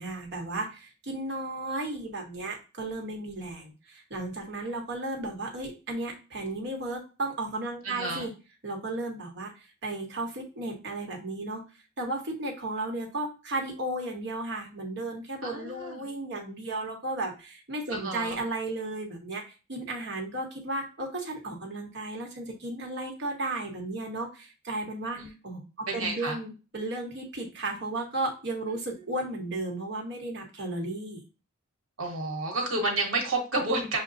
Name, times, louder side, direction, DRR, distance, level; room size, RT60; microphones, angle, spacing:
voice 1, 0.0-8.3 8.6-11.6 12.0-31.2, right 2 dB, 55° right, 1 dB, 1.1 m, -34 dB
voice 2, 7.8-8.3 15.4-16.0 17.9-18.4 25.2-25.3 25.9-26.4 32.0-34.0, right 2 dB, 75° right, 1 dB, 1.2 m, -30 dB
6.6 x 2.2 x 2.6 m, 0.32 s
head